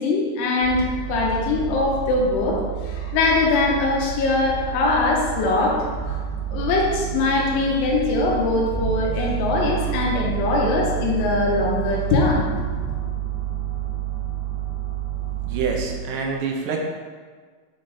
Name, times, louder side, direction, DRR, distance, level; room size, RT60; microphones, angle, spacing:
voice 1, 0.0-6.2 6.5-12.9, left 3 dB, 80° left, -2 dB, 3.2 m, -22 dB
sound 1, 0.6-15.8, right 11 dB, 60° left, 2.6 m, -29 dB
voice 2, 15.5-16.8, right 5 dB, 80° right, 1 dB, 2.6 m, -26 dB
8.7 x 3.8 x 3.9 m, 1.5 s
omnidirectional pair, 5.5 m